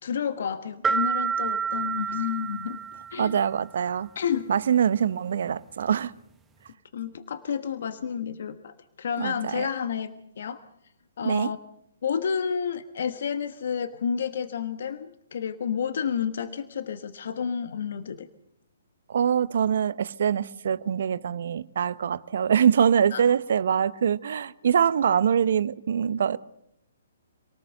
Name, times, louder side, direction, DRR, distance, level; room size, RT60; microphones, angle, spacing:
voice 1, 0.0-2.8 3.1-3.4 4.1-4.5 6.9-10.6 11.2-11.6 12.0-18.3 23.1-23.2, left 7 dB, 60° left, 1.3 m, -30 dB
sound 1, 0.8-3.5, right 5 dB, 10° right, 0.8 m, -29 dB
voice 2, 3.2-4.1 4.5-6.1 9.2-9.7 11.2-11.5 19.1-26.4, right 8 dB, 65° right, 0.9 m, -24 dB
27.5 x 18.5 x 6.7 m
hypercardioid pair, 135°, 0 cm